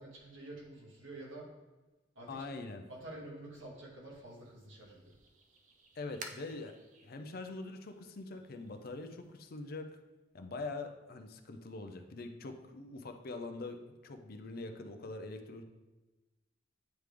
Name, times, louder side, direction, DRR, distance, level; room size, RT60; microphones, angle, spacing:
voice 1, 0.0-1.5 2.2-2.4 2.9-5.1, right 1 dB, 80° right, -4 dB, 2.0 m, -48 dB
voice 2, 2.3-2.9 6.0-6.7 7.0-9.9 10.3-15.6, left 3 dB, 50° left, 7 dB, 0.5 m, -43 dB
sound 1, 4.3-9.5, right 3 dB, 40° right, 0.5 m, -55 dB
9.0 x 3.3 x 3.4 m, 1.1 s
head